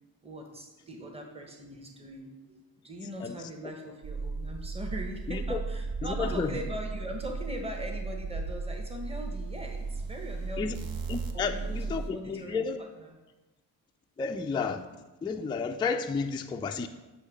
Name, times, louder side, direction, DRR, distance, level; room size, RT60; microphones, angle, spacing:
voice 1, 0.2-10.9 11.3-13.2, equal, 10° right, 3 dB, 1.1 m, -41 dB
sound 1, 4.0-12.1, right 3 dB, 50° right, 0.8 m, -35 dB
voice 2, 5.3-5.6 6.0-6.5 10.6-10.8 11.1-12.8 14.2-14.9 15.2-16.9, left 5 dB, 10° left, 5 dB, 0.3 m, -32 dB
7.8 x 2.8 x 5.1 m, 1.1 s
supercardioid pair, 50°, 47 cm